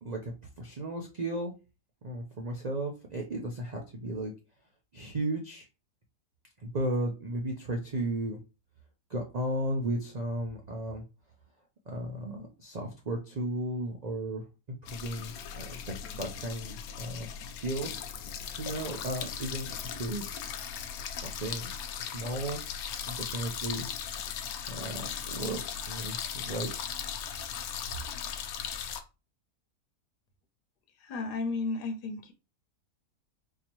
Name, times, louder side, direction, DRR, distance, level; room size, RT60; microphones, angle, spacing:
voice 1, 0.0-0.3 0.6-1.5 2.0-4.3 4.9-5.7 6.6-8.4 9.1-11.0 11.9-14.4 14.9-18.1 18.6-22.6 23.1-23.9 24.7-26.7, right 1 dB, 85° right, 0.3 m, -35 dB
sound 1, 14.9-29.0, left 8 dB, 70° left, 1.0 m, -38 dB
voice 2, 31.0-32.3, left 3 dB, 90° left, 1.2 m, -33 dB
4.1 x 2.8 x 2.9 m
omnidirectional pair, 1.7 m